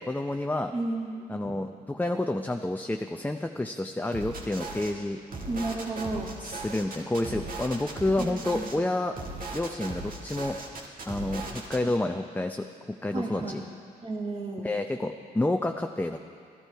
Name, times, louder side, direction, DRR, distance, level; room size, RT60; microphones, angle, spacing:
voice 1, 0.0-0.7 1.3-5.2 6.4-9.1 9.5-10.6 11.1-12.7 13.0-13.6 14.6-16.2, left 2 dB, 10° left, 5 dB, 0.6 m, -29 dB
voice 2, 0.7-1.5 5.5-6.3 8.2-8.7 11.8-11.9 13.1-13.7 14.0-14.7, right 2 dB, 35° right, -3 dB, 1.8 m, -33 dB
sound 1, 4.1-4.9 5.3-8.8 9.1-11.8, right 2 dB, 55° right, 1.7 m, -38 dB
13.5 x 11.5 x 4.6 m, 2.3 s
supercardioid pair, 55°, 17 cm